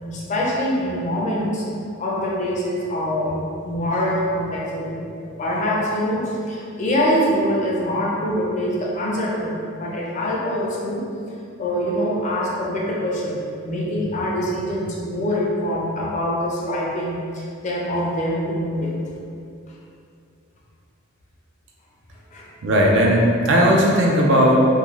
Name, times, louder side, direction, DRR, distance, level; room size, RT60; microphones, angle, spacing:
voice 1, 0.0-1.6 2.0-5.1 5.4-11.0 11.6-18.9 22.3-22.5, equal, 35° left, -4 dB, 0.4 m, -24 dB
voice 2, 22.6-24.6, equal, 55° right, -1 dB, 0.4 m, -16 dB
2.4 x 2.2 x 3.1 m, 2.5 s
head